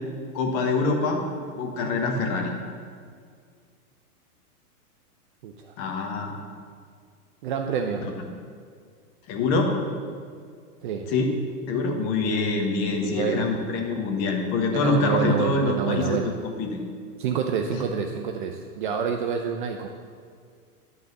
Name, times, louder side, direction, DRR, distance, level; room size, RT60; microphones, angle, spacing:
voice 1, 0.3-1.2 1.6-2.5 5.8-6.3 9.3-9.7 11.1-11.3 11.7-16.8, left 3 dB, 30° left, 2 dB, 1.3 m, -25 dB
voice 2, 5.4-5.7 7.4-8.1 10.8-11.1 12.9-13.5 14.7-16.3 17.2-19.9, right 7 dB, 35° right, 4 dB, 0.4 m, -28 dB
11.0 x 3.8 x 6.6 m, 2.1 s
hypercardioid pair, 135°, 47 cm